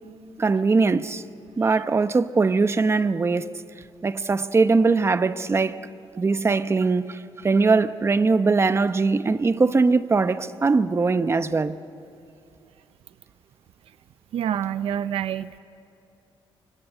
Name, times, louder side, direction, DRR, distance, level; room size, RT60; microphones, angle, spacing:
voice 1, 0.4-1.2 1.6-3.5 4.0-5.9 6.2-11.8, right 4 dB, 25° right, 0.9 m, -21 dB
voice 2, 14.3-15.6, right 9 dB, 80° right, 0.6 m, -27 dB
29.5 x 24.5 x 8.1 m
cardioid pair, 100°, 10 cm